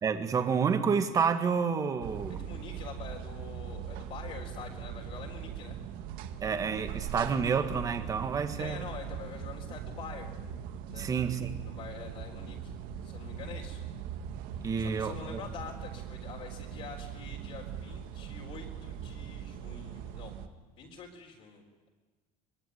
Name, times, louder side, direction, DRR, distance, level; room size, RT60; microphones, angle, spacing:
voice 1, 0.0-2.4 6.4-8.8 10.9-11.5 14.6-15.4, right 6 dB, 20° right, 8 dB, 1.8 m, -29 dB
sound 1, 2.0-20.5, right 8 dB, 60° right, 1.9 m, -41 dB
voice 2, 2.3-5.8 8.6-10.3 10.9-11.1 11.6-12.7 13.0-13.8 14.8-20.3 20.8-21.9, left 6 dB, 40° left, -2 dB, 3.9 m, -46 dB
24.5 x 23.0 x 9.6 m, 1.3 s
cardioid pair, 175°, 17 cm